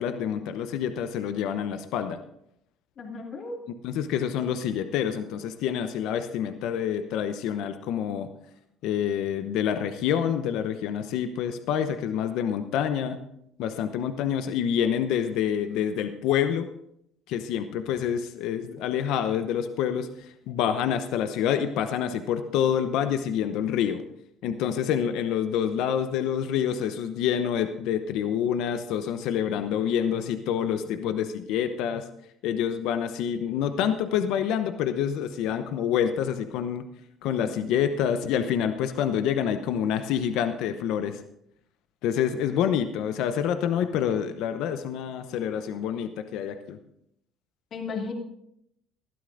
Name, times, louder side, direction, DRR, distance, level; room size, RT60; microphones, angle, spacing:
voice 1, 0.0-2.2 3.8-8.3 8.8-13.2 13.6-16.7 17.3-20.1 20.5-24.0 24.4-32.0 32.4-36.8 37.2-41.2 42.0-46.8, left 9 dB, 70° left, 9 dB, 0.8 m, -27 dB
voice 2, 3.0-3.6 47.7-48.1, left 4 dB, 50° left, 1 dB, 2.6 m, -35 dB
20.0 x 12.5 x 2.6 m, 0.75 s
hypercardioid pair, 70°, 0 cm